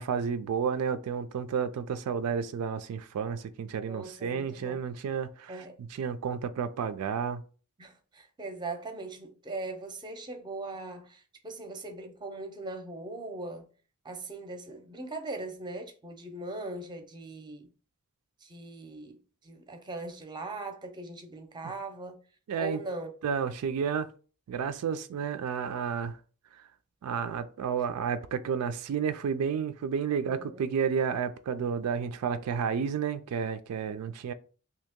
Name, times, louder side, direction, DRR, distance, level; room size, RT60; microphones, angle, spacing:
voice 1, 0.0-7.4 22.5-22.8 23.2-24.1 24.5-26.2 27.0-34.3, right 6 dB, 85° right, 0.3 m, -31 dB
voice 2, 3.9-4.8 5.5-5.8 7.8-13.7 14.0-17.7 18.4-19.2 19.4-22.2 22.6-23.1 30.3-30.6, right 2 dB, 20° right, 0.6 m, -40 dB
2.9 x 2.8 x 3.5 m
head